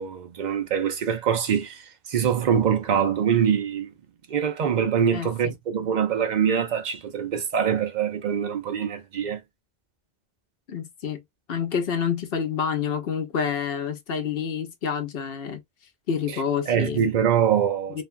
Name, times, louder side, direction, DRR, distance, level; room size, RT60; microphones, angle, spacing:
voice 1, 0.0-3.9 4.3-9.4 16.3-16.4 16.7-18.0, right 8 dB, 50° right, 0.7 m, -24 dB
voice 2, 5.1-5.5 10.7-11.2 11.5-15.6 16.1-17.1 17.9-18.0, left 7 dB, 70° left, 0.9 m, -28 dB
2.6 x 2.3 x 2.5 m
omnidirectional pair, 1.0 m